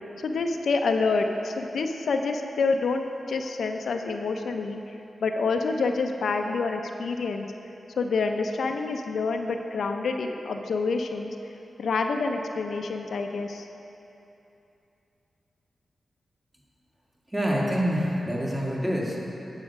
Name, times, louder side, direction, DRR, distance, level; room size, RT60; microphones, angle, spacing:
voice 1, 0.2-4.8 5.2-7.5 8.0-11.3 11.8-13.7, left 4 dB, 80° left, 5 dB, 0.4 m, -27 dB
voice 2, 17.3-19.2, equal, 20° right, -4 dB, 1.8 m, -26 dB
8.7 x 4.8 x 6.1 m, 2.9 s
cardioid pair, 55°, 0 cm